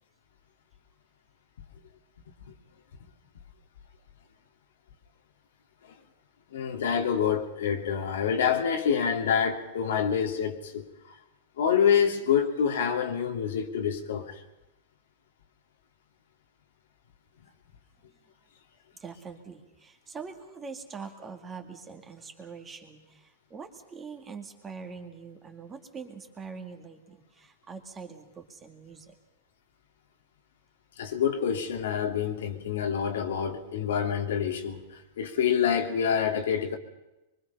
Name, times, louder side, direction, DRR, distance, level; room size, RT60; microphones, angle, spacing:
voice 1, 6.5-11.2 11.6-14.4 31.0-36.8, left 7 dB, 80° left, 2.7 m, -27 dB
voice 2, 19.0-29.1, right 5 dB, 15° right, 2.2 m, -43 dB
24.0 x 23.5 x 5.6 m
supercardioid pair, 155°, 0 cm